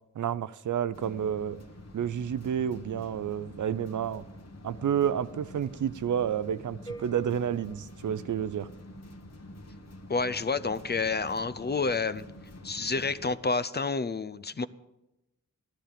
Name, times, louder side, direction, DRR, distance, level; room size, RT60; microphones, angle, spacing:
voice 1, 0.2-1.6 1.9-4.2 4.6-8.7, right 9 dB, 60° right, 15 dB, 0.6 m, -30 dB
sound 1, 0.9-13.3, left 1 dB, 50° left, 1.7 m, -47 dB
sound 2, 6.9-8.9, right 3 dB, 10° left, 0.9 m, -48 dB
voice 2, 10.1-12.3 12.6-14.7, left 4 dB, 30° left, 15 dB, 0.5 m, -29 dB
13.5 x 11.5 x 5.1 m, 0.94 s
cardioid pair, 65°, 34 cm